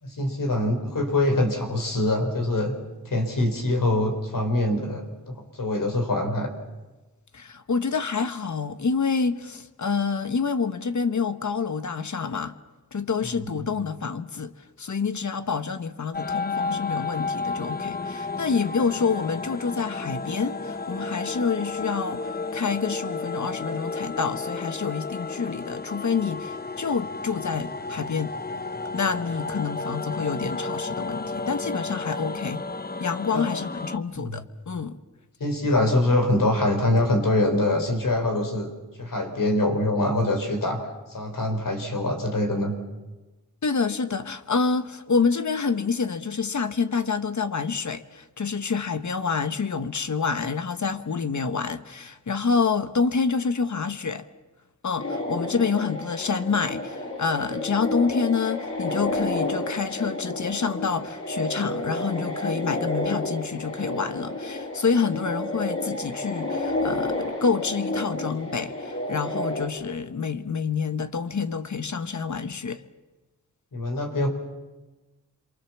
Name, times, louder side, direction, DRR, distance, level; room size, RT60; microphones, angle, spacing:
voice 1, 0.0-2.7 3.0-6.5 13.4-13.5 33.3-33.5 34.2-34.4 35.4-38.7 39.0-42.7 73.7-74.3, left 1 dB, 90° left, 4.2 m, -24 dB
voice 2, 7.3-12.5 12.9-14.5 14.8-28.4 28.9-32.6 33.0-35.0 43.6-54.3 54.8-72.8, left 5 dB, 65° left, 1.2 m, -27 dB
sound 1, 16.1-34.0, left 3 dB, 30° left, 0.9 m, -32 dB
sound 2, 55.0-69.7, left 2 dB, 50° left, 5.1 m, -30 dB
27.0 x 24.0 x 7.3 m
wide cardioid pair, 85°, 32 cm